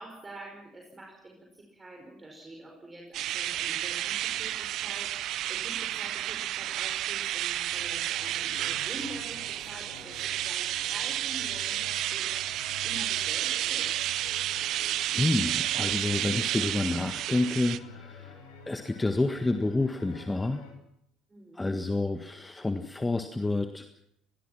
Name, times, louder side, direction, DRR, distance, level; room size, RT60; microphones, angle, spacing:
voice 1, 0.0-5.2 5.5-12.6 12.8-13.9 21.3-21.8, right 2 dB, 20° right, 0 dB, 5.5 m, -46 dB
sound 1, 3.1-17.8, right 13 dB, 50° right, 0.9 m, -31 dB
sound 2, 7.6-20.7, left 6 dB, 65° left, 6.0 m, -49 dB
voice 2, 14.5-18.4 18.7-20.6 21.5-23.8, left 2 dB, 10° left, 8 dB, 1.6 m, -29 dB
24.0 x 20.5 x 5.9 m, 0.74 s
figure-of-eight pair, 60°, 0 cm